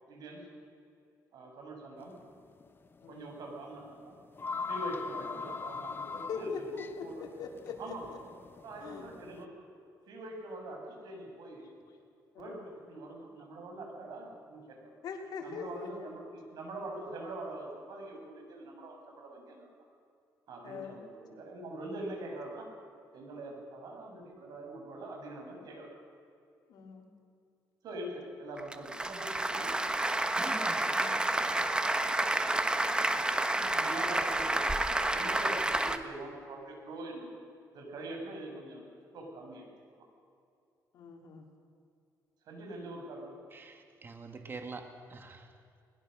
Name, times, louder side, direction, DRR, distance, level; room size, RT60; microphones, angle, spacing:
voice 1, 0.1-0.4 1.3-2.1 3.1-4.2 4.6-6.7 7.0-7.1 7.8-8.1 8.6-9.5 9.8-11.7 12.4-14.9 15.4-19.7 20.5-22.7 23.1-26.0 27.8-29.8 33.7-37.3 37.7-38.8 39.1-39.7 39.9-40.0 42.5-43.3, right 1 dB, 75° right, 2 dB, 6.2 m, -43 dB
sound 1, 2.0-2.3 2.6-2.7 3.8-3.9 4.2-9.4, left 4 dB, 30° left, 1.0 m, -41 dB
voice 2, 6.3-8.2 8.8-9.1 12.3-12.6 15.0-16.1 20.6-21.0 26.7-27.1 30.9-31.1 33.5-33.9 40.9-41.5, left 5 dB, 70° left, 1 dB, 3.6 m, -42 dB
Applause, 28.6-36.0, right 2 dB, 15° right, 1.2 m, -30 dB
voice 3, 43.5-45.6, right 4 dB, 30° right, 5 dB, 2.0 m, -45 dB
21.0 x 20.5 x 6.4 m, 2.5 s
cardioid pair, 110°, 7 cm